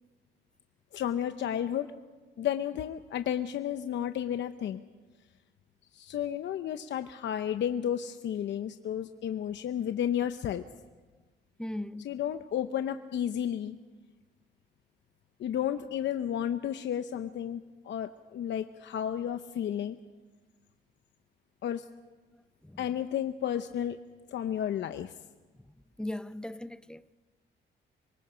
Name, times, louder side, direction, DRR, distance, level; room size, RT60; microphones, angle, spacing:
voice 1, 0.9-1.9 2.4-4.8 5.9-10.6 12.0-13.8 15.4-20.0 21.6-21.8 22.8-24.0 24.3-25.1, left 10 dB, 65° left, 0.9 m, -32 dB
voice 2, 11.6-12.1 22.6-22.8 26.0-27.0, left 1 dB, 5° left, 0.6 m, -38 dB
26.5 x 23.5 x 5.1 m
cardioid pair, 90°, 20 cm